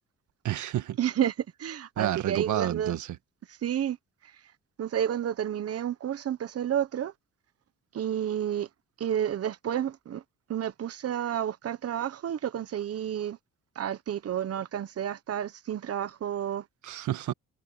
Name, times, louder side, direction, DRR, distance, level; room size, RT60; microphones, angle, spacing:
voice 1, 0.4-1.0 2.0-3.2 16.8-17.3, right 12 dB, 75° right, 1.7 m, -30 dB
voice 2, 1.0-3.0 3.5-4.0 4.2-4.3 4.8-7.1 7.9-8.7 9.0-10.2 10.5-13.4 13.7-16.6, right 10 dB, 50° right, 1.2 m, -30 dB
cardioid pair, 90°, 30 cm